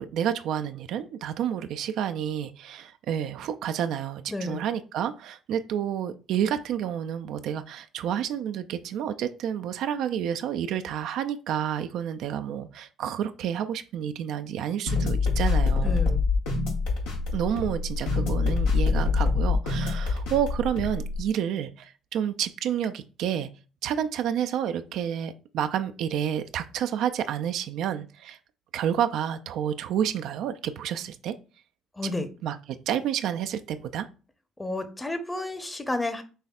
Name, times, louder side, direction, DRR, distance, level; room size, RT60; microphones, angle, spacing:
voice 1, 0.0-16.1 17.3-23.5 23.8-28.4 28.7-31.3 32.0-32.1 32.4-34.1, right 9 dB, 65° right, 9 dB, 0.3 m, -29 dB
voice 2, 4.3-4.6 15.8-16.2 32.0-32.3 34.6-36.2, left 2 dB, 15° left, 9 dB, 0.8 m, -31 dB
sound 1, 14.9-21.2, left 4 dB, 75° left, 1.0 m, -25 dB
5.5 x 3.2 x 2.4 m, 0.35 s
hypercardioid pair, 50°, 0 cm